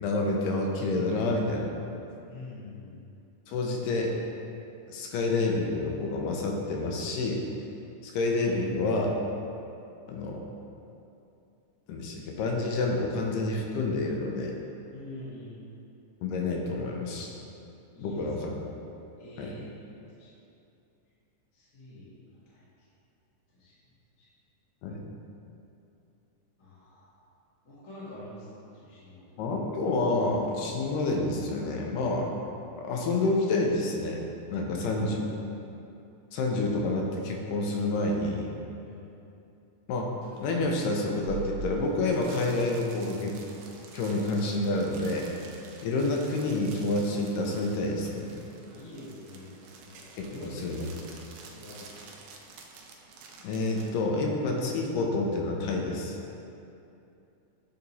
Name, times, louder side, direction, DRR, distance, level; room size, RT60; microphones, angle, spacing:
voice 1, 0.0-1.7 3.5-4.1 4.9-7.4 8.0-9.2 10.1-10.5 11.9-14.5 16.2-17.4 18.0-18.7 19.4-19.5 24.8-25.0 29.4-32.3 32.8-34.2 34.5-35.2 36.3-38.5 39.9-40.1 40.4-43.4 43.9-45.3 45.8-48.3 50.2-50.8 53.4-56.2, left 2 dB, 85° left, 0 dB, 2.2 m, -28 dB
voice 2, 2.2-3.0 14.9-15.8 17.9-18.3 19.2-20.3 21.5-22.6 23.6-23.7 24.2-24.3 26.6-27.2 27.6-29.6 34.6-35.3 38.8-39.0 48.7-50.9 51.4-52.0, left 1 dB, 50° left, -9 dB, 0.9 m, -46 dB
sound 1, 40.2-53.9, right 6 dB, 80° right, 1.6 m, -47 dB
8.3 x 2.9 x 4.0 m, 2.7 s
omnidirectional pair, 3.7 m